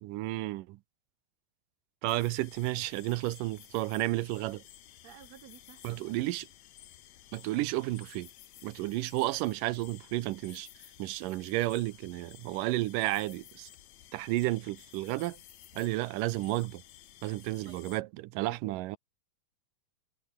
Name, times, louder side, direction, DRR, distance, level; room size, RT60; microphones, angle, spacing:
voice 1, 0.0-0.8 2.0-4.6 5.8-6.5 7.3-8.3 8.6-10.7 11.0-13.7 14.1-15.4 15.7-16.8 17.2-19.0, right 18 dB, 85° right, 2.3 m, -32 dB
sound 1, 2.1-18.0, left 12 dB, 65° left, 2.2 m, -54 dB
voice 2, 5.0-6.2 17.6-17.8 18.4-19.0, right 10 dB, 60° right, 2.0 m, -52 dB
omnidirectional pair, 3.9 m